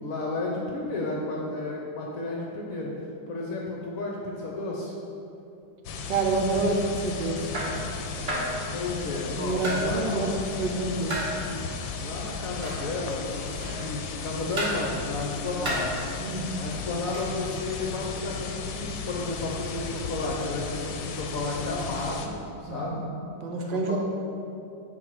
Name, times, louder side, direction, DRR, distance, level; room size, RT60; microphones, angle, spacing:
voice 1, 0.0-2.9 3.3-4.9 8.7-10.3 12.0-15.9 16.6-22.3 22.6-23.0 23.5-24.0, left 2 dB, 65° left, -2 dB, 0.9 m, -32 dB
sound 1, 5.8-22.3, left 5 dB, 90° left, 1.3 m, -35 dB
voice 2, 6.1-7.8 9.4-11.3 16.2-16.5 22.7-23.1 23.4-24.0, right 2 dB, 75° right, 2 dB, 1.3 m, -28 dB
sound 2, 6.5-6.7 7.5-7.8 8.3-8.6 9.6-9.9 11.1-11.4 12.6-12.9 13.6-13.9 14.6-14.9 15.6-15.9 17.1-17.3, right 1 dB, 45° right, 1.3 m, -31 dB
7.6 x 2.6 x 5.9 m, 2.7 s
omnidirectional pair, 2.0 m